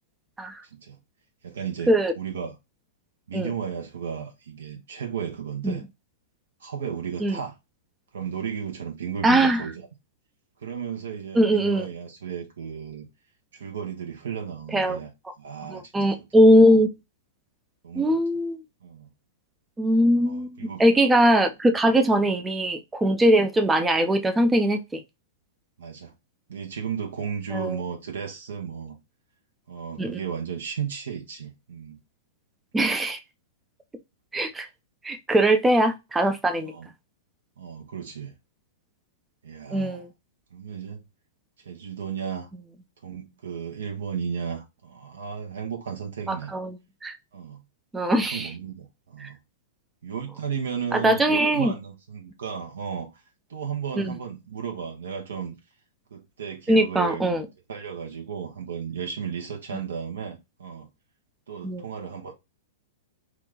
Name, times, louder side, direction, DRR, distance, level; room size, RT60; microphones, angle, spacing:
voice 1, 1.4-2.6 3.3-5.8 6.6-7.5 8.1-9.9 10.6-13.1 13.5-15.1 15.4-16.2 17.8-18.1 18.8-19.1 20.2-20.8 22.1-22.3 25.8-26.1 26.5-29.0 29.7-32.0 36.5-36.9 37.6-38.3 39.4-40.1 40.5-41.0 41.6-42.5 43.0-46.5 47.3-47.6 48.0-49.4 50.0-53.2 53.5-55.6 56.1-57.4 57.7-60.9 61.5-62.3, right 7 dB, 70° right, 0.8 m, -34 dB
voice 2, 9.2-9.6 11.3-11.9 14.7-15.0 15.7-16.9 18.0-18.6 19.8-20.5 20.8-25.0 27.5-27.8 30.0-30.2 32.7-33.2 34.3-34.7 35.0-36.7 39.7-40.1 46.5-46.8 47.0-47.1 47.9-48.5 49.2-49.3 50.9-51.7 54.0-54.1 56.7-57.4 61.6-61.8, right 1 dB, 10° right, 0.5 m, -21 dB
3.0 x 2.4 x 3.5 m
figure-of-eight pair, 105°, 0 cm